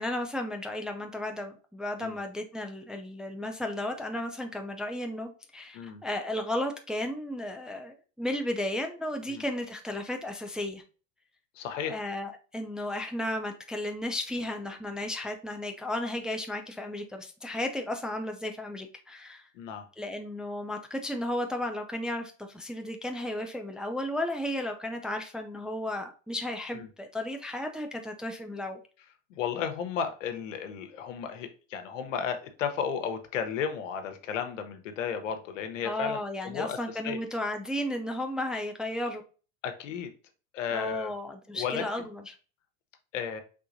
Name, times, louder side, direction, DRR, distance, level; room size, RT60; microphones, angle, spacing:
voice 1, 0.0-10.8 11.8-19.5 20.0-28.8 35.8-39.2 40.7-42.4, left 1 dB, ahead, 4 dB, 0.3 m, -34 dB
voice 2, 11.6-12.0 19.5-19.8 26.7-26.9 29.3-36.8 37.0-37.2 39.6-40.1 40.5-41.1 41.5-41.8 43.1-43.4, left 7 dB, 90° left, 7 dB, 0.9 m, -33 dB
4.6 x 3.4 x 2.6 m, 0.36 s
supercardioid pair, 110°, 37 cm